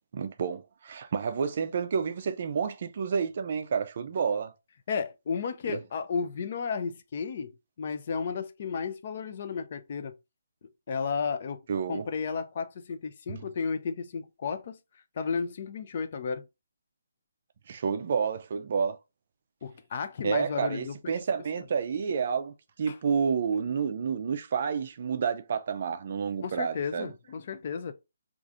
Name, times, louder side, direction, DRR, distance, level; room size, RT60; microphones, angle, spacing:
voice 1, 0.1-4.5 5.7-5.8 11.7-12.1 13.3-13.4 17.7-19.0 20.2-27.1, right 6 dB, 40° right, 0.4 m, -30 dB
voice 2, 4.9-10.1 10.9-11.6 11.9-14.8 15.2-16.4 19.6-21.2 22.9-23.0 26.4-27.9, left 5 dB, 40° left, 0.4 m, -33 dB
4.7 x 2.4 x 2.6 m
hypercardioid pair, 170°, 0 cm